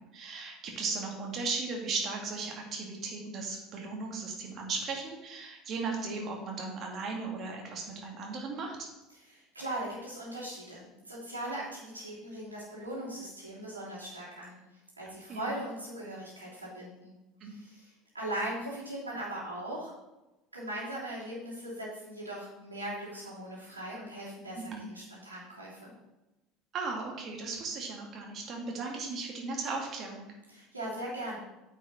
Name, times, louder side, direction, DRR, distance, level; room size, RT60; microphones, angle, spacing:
voice 1, 0.1-8.9 15.3-15.6 17.4-17.5 24.5-24.9 26.7-30.3, right 4 dB, 40° right, 0 dB, 2.1 m, -36 dB
voice 2, 9.1-14.6 15.0-17.1 17.4-19.9 20.5-25.9 30.5-31.4, right 1 dB, 90° right, -6 dB, 3.0 m, -39 dB
9.3 x 5.6 x 4.3 m, 1.0 s
figure-of-eight pair, 70°, 0 cm